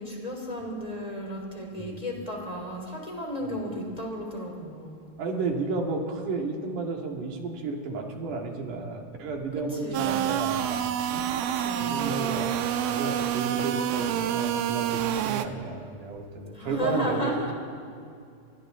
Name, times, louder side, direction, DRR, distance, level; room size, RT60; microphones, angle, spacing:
voice 1, 0.0-5.1 9.8-10.5 11.6-12.3 16.6-17.5, equal, 10° left, 0 dB, 3.2 m, -34 dB
voice 2, 5.2-11.2 11.8-12.5 12.9-17.3, right 3 dB, 60° right, 1 dB, 3.4 m, -32 dB
sound 1, 9.9-15.5, right 10 dB, 90° right, 2.6 m, -27 dB
30.0 x 24.0 x 3.8 m, 2.4 s
omnidirectional pair, 4.2 m